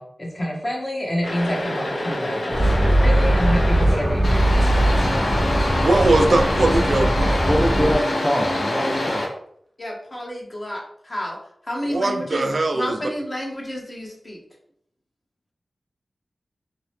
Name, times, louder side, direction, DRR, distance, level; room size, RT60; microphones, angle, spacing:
voice 1, 0.0-4.5 9.8-11.4 11.6-12.5 12.7-14.4, equal, 40° left, -1 dB, 0.9 m, -29 dB
sound 1, 1.2-3.8 4.2-9.2, left 1 dB, 75° left, 0.7 m, -25 dB
sound 2, 2.5-8.0, right 1 dB, 55° left, 1.2 m, -20 dB
voice 2, 5.8-7.4 11.8-12.9, right 2 dB, 70° right, 4 dB, 0.3 m, -20 dB
voice 3, 7.5-9.2, equal, 10° left, -1 dB, 0.4 m, -24 dB
2.7 x 2.0 x 3.1 m, 0.68 s
cardioid pair, 50°, 0 cm